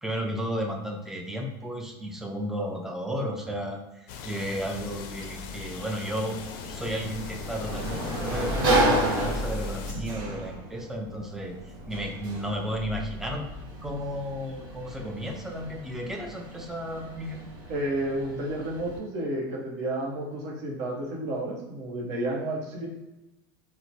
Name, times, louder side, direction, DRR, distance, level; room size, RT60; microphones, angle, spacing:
voice 1, 0.0-6.4 6.7-11.5 11.9-13.4 13.8-17.4, equal, 5° right, 1 dB, 0.4 m, -33 dB
sound 1, 4.1-9.9, left 6 dB, 65° left, 0.4 m, -40 dB
Sliding door, 6.3-19.0, right 1 dB, 80° right, 1.0 m, -32 dB
voice 2, 17.7-22.9, right 1 dB, 55° right, -1 dB, 0.9 m, -31 dB
2.8 x 2.1 x 2.6 m, 0.99 s
supercardioid pair, 125°, 13 cm